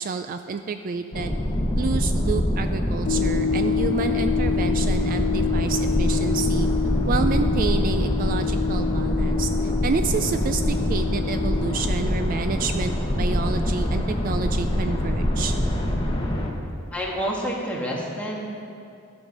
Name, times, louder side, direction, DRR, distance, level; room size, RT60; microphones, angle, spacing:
voice 1, 0.0-1.3 1.8-6.7 7.1-15.6, right 5 dB, 45° right, 8 dB, 0.3 m, -29 dB
sound 1, 1.1-16.5, equal, 25° left, 1.2 m, -24 dB
sound 2, 3.1-12.2, left 7 dB, 60° left, 0.4 m, -28 dB
voice 2, 16.9-18.6, equal, 5° left, -3 dB, 1.6 m, -28 dB
13.0 x 7.1 x 5.2 m, 2.4 s
head